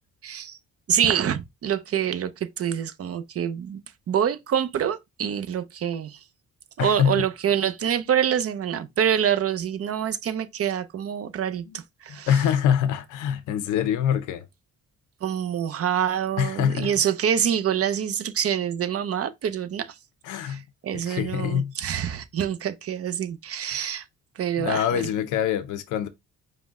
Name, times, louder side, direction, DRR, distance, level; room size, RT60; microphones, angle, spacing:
voice 1, 0.2-0.6 0.9-2.3 2.6-3.8 4.1-6.2 6.8-11.6 12.0-12.3 15.2-19.9 20.4-24.0 24.4-25.0, right 9 dB, 50° right, 0.7 m, -26 dB
voice 2, 6.8-7.2 11.7-11.8 12.3-14.4 16.4-16.9 20.2-20.6 20.9-21.7 24.6-26.1, left 9 dB, 90° left, 0.6 m, -24 dB
5.1 x 2.2 x 3.6 m
cardioid pair, 90°, 30 cm